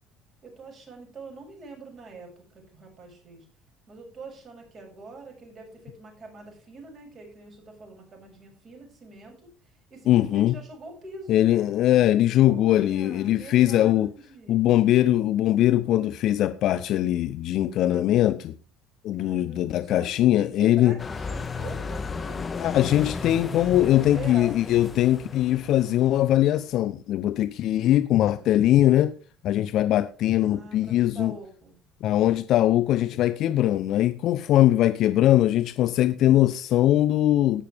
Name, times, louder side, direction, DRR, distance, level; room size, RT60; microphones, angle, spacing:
voice 1, 0.4-3.5 3.9-9.4 9.9-11.5 12.4-14.7 19.2-22.4 22.7-23.0 23.8-24.7 30.4-31.7, right 3 dB, 40° right, 7.2 m, -44 dB
voice 2, 10.1-10.6 11.3-14.1 14.5-18.5 19.0-21.0 22.6-29.2 29.4-31.3 32.0-37.6, left 13 dB, 65° left, 0.6 m, -21 dB
sound 1, 21.0-26.6, left 4 dB, 30° left, 1.5 m, -34 dB
18.5 x 6.7 x 3.5 m
hypercardioid pair, 75°, 0 cm